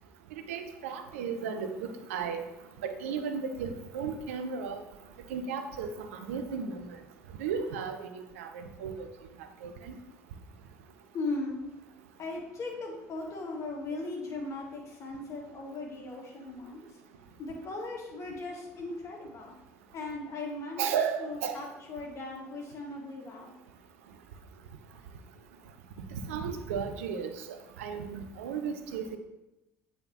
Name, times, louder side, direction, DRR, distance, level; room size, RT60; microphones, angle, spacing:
voice 1, 0.3-2.4 2.8-4.8 5.3-6.9 7.4-9.1 9.6-9.9 20.8-21.6 26.1-27.4 27.8-29.2, right 6 dB, 70° right, 7 dB, 0.6 m, -34 dB
voice 2, 11.1-11.6 12.2-17.0 17.4-19.5 19.9-20.9 21.2-23.5, left 2 dB, 40° left, -1 dB, 1.7 m, -38 dB
8.5 x 4.1 x 2.9 m, 0.93 s
figure-of-eight pair, 60°, 8 cm